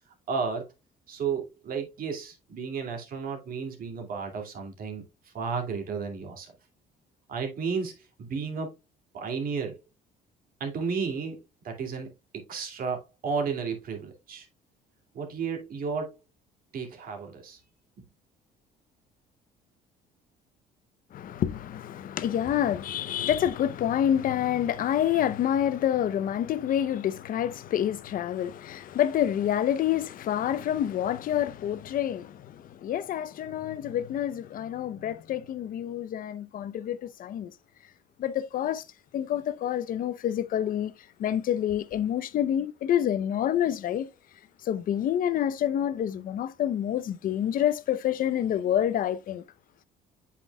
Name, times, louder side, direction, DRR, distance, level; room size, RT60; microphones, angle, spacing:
voice 1, 0.3-0.7 1.1-5.0 5.3-6.5 7.3-8.7 9.1-9.8 10.6-14.5 15.1-16.2 16.7-17.6, right 5 dB, 60° right, 2.4 m, -33 dB
voice 2, 21.1-37.5 38.2-38.8 39.1-40.9 41.2-44.1 44.6-49.4, left 10 dB, 55° left, 0.7 m, -28 dB
8.2 x 6.0 x 2.3 m
cardioid pair, 110°, 17 cm